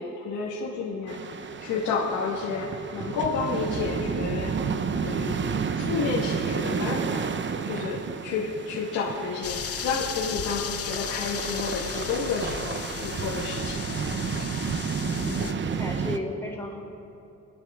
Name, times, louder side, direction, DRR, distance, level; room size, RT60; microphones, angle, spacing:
voice 1, 0.0-4.5 4.9-13.8, left 5 dB, 90° left, -5 dB, 2.0 m, -31 dB
sound 1, 1.1-16.2, right 6 dB, 40° right, 0.8 m, -31 dB
sound 2, 9.4-15.5, left 9 dB, 50° left, 0.8 m, -35 dB
voice 2, 15.0-16.8, left 1 dB, 10° left, -2 dB, 3.8 m, -35 dB
28.5 x 9.8 x 3.8 m, 3.0 s
cardioid pair, 90°, 30 cm